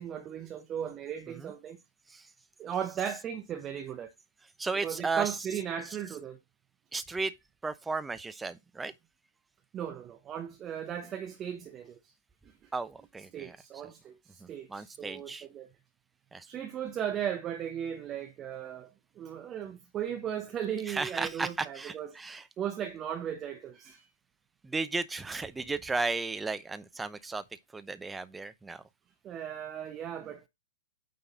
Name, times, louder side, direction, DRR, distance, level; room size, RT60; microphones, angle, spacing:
voice 1, 0.0-1.8 2.6-4.1 4.8-6.4 9.7-12.1 12.4-12.7 13.3-15.7 16.5-18.9 19.2-22.1 22.6-24.1 29.2-30.5, right 9 dB, 25° right, 1.0 m, -37 dB
voice 2, 4.6-5.3 6.9-7.3 7.6-8.9 12.7-13.6 14.4-15.5 16.3-16.5 20.9-22.5 24.6-27.4 27.7-28.8, right 3 dB, 10° right, 0.7 m, -34 dB
9.0 x 3.9 x 3.9 m
figure-of-eight pair, 110°, 0 cm